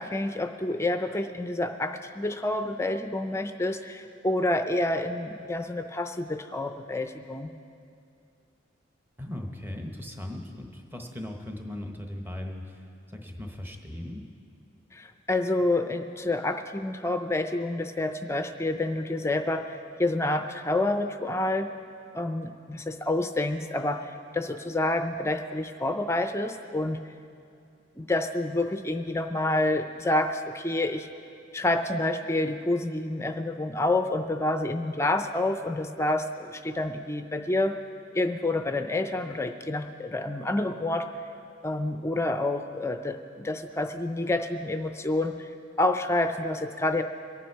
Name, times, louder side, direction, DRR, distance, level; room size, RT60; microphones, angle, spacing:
voice 1, 0.0-7.5 14.9-21.7 22.1-27.0 28.0-31.1 31.5-37.7 38.1-41.1 41.6-45.5 45.8-47.0, left 2 dB, 15° left, 7 dB, 0.4 m, -28 dB
voice 2, 9.2-14.3, left 1 dB, 10° right, 3 dB, 1.0 m, -38 dB
23.0 x 9.2 x 4.6 m, 2.5 s
head